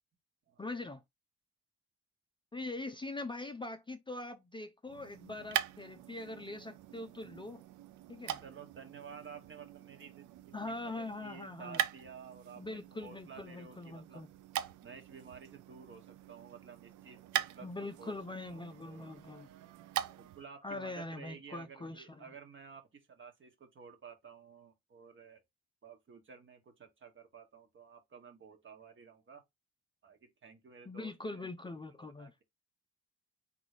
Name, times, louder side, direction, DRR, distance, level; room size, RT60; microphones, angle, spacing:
voice 1, 0.6-1.0 2.5-7.6 8.1-8.4 10.5-11.8 12.6-14.3 17.6-19.5 20.6-22.3 30.9-32.3, left 2 dB, 15° left, 0.5 m, -42 dB
sound 1, 4.8-20.5, right 12 dB, 80° right, 0.5 m, -42 dB
voice 2, 8.4-14.3 14.8-18.1 18.5-19.1 20.1-25.4 25.8-29.4 30.0-31.4 32.2-32.4, right 6 dB, 40° right, 1.3 m, -53 dB
3.9 x 2.7 x 4.8 m
cardioid pair, 90°, 30 cm